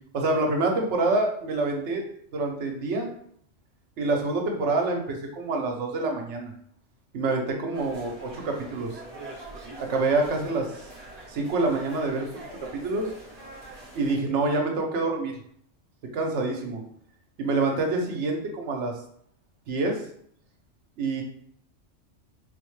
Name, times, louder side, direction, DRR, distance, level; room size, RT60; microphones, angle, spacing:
voice 1, 0.1-2.0 2.3-3.1 4.0-6.5 7.1-8.9 9.8-10.7 11.3-12.4 12.7-13.1 13.9-15.4 16.1-16.8 17.4-18.9 19.7-20.0 21.0-21.2, right 3 dB, 70° right, 2 dB, 1.0 m, -26 dB
sound 1, 7.7-14.2, right 2 dB, 35° right, 1.0 m, -44 dB
4.3 x 2.1 x 3.0 m, 0.64 s
omnidirectional pair, 1.3 m